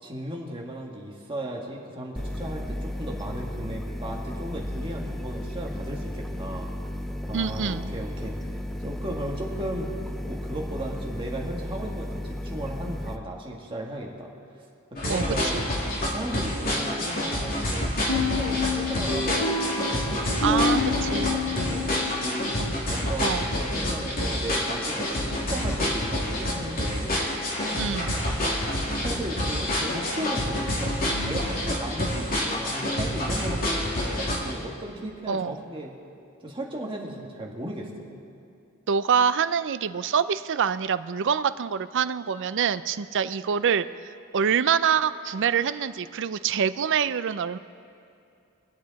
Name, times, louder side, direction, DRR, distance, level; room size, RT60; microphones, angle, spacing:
voice 1, 0.0-6.7 7.3-8.3 8.8-14.3 14.9-15.6 16.0-22.5 22.9-27.2 28.1-28.2 29.0-35.9 36.4-38.2, right 1 dB, 25° right, -1 dB, 1.7 m, -36 dB
sound 1, 2.2-13.2, left 1 dB, ahead, 0.5 m, -34 dB
voice 2, 7.3-7.9 15.1-15.3 15.5-15.7 20.4-20.8 21.1-21.4 22.6-22.7 23.2-23.5 27.8-28.2 35.3-35.6 38.9-43.9 44.3-47.6, right 7 dB, 60° right, 14 dB, 0.4 m, -25 dB
sound 2, 15.0-34.5, left 1 dB, 45° left, 2.5 m, -28 dB
sound 3, 18.1-22.8, left 4 dB, 75° left, 1.7 m, -28 dB
24.0 x 8.4 x 4.1 m, 2.6 s
head